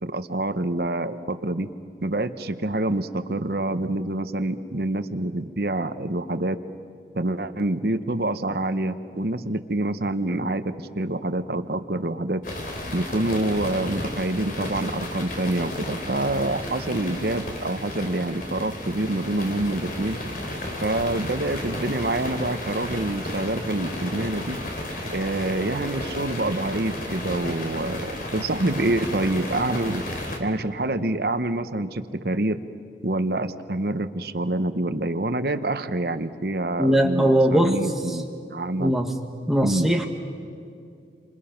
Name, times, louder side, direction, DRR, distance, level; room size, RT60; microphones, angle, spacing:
voice 1, 0.0-1.7 2.0-6.6 7.1-12.4 12.9-20.2 20.8-24.6 25.1-30.0 30.4-32.6 33.0-38.9 39.6-39.9, right 2 dB, 60° right, 10 dB, 1.0 m, -26 dB
sound 1, 12.4-30.4, left 1 dB, 50° left, 3.3 m, -33 dB
voice 2, 36.8-37.8 38.1-38.2 38.8-39.1 39.5-40.1, equal, ahead, 3 dB, 1.6 m, -20 dB
30.0 x 26.5 x 5.9 m, 2.4 s
head